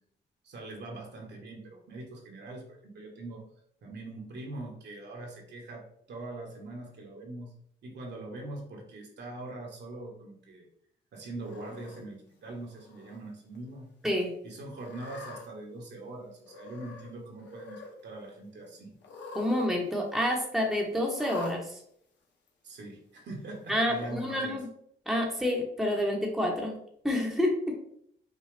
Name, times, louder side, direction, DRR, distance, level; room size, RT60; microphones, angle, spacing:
voice 1, 0.4-3.4 3.8-7.5 7.8-10.7 11.1-13.9 14.4-18.9 22.6-24.6, right 2 dB, 60° right, 0 dB, 1.3 m, -42 dB
Cat, 11.4-12.0 12.7-13.2 13.5-13.6 14.7-15.5 16.4-17.1 17.4-17.9 19.0-19.7 19.9-20.0 21.2-21.6 22.5-22.6 23.7-24.3, left 3 dB, 65° left, 1.0 m, -44 dB
voice 2, 19.3-21.8 23.7-24.6 25.1-26.7 27.0-27.7, left 1 dB, ahead, -1 dB, 1.0 m, -28 dB
5.6 x 2.3 x 3.3 m, 0.67 s
cardioid pair, 90°, 20 cm